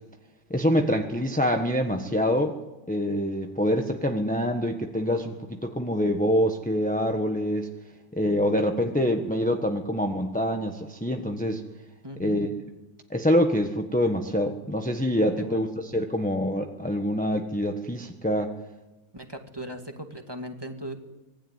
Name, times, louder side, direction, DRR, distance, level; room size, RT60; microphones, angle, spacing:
voice 1, 0.5-2.6 2.9-7.7 8.1-11.6 12.2-12.5 13.1-18.5, equal, 5° left, 4 dB, 0.9 m, -25 dB
voice 2, 12.0-12.4 15.4-15.8 19.1-21.0, right 1 dB, 10° right, 4 dB, 2.0 m, -38 dB
25.5 x 20.5 x 9.5 m, 1.1 s
omnidirectional pair, 2.3 m